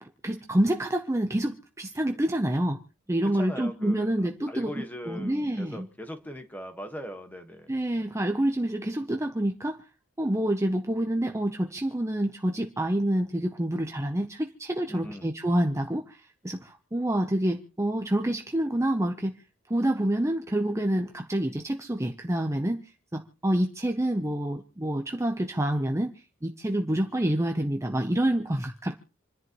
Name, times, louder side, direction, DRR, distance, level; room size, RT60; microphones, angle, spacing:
voice 1, 0.0-2.8 3.1-5.9 7.7-9.8 10.2-19.4 19.7-22.8 23.1-26.1 26.4-29.0, right 1 dB, 15° right, 4 dB, 0.8 m, -27 dB
voice 2, 3.3-4.1 4.5-7.7 7.9-8.0 14.9-15.3, equal, 10° left, 6 dB, 1.5 m, -40 dB
28.0 x 11.0 x 3.1 m, 0.38 s
head